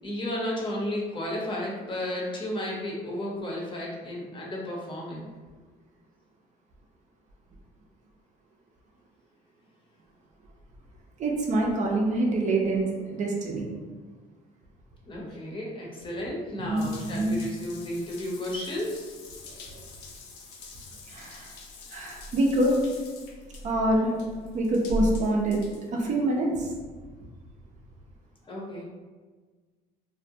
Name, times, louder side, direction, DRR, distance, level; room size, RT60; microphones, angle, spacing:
voice 1, 0.0-5.3 15.1-19.1 28.5-28.8, left 1 dB, 30° left, -3 dB, 0.7 m, -33 dB
voice 2, 11.2-13.7 16.6-17.4 19.7-19.8 21.1-21.5 21.9-22.7 23.6-24.2 24.5-25.6 25.9-26.7, right 1 dB, 45° right, -1 dB, 0.5 m, -26 dB
Water tap faucet / Bathtub (filling or washing) / Drip, 16.8-26.6, left 1 dB, 85° left, 0.5 m, -40 dB
2.5 x 2.0 x 2.7 m, 1.4 s
cardioid pair, 110°, 17 cm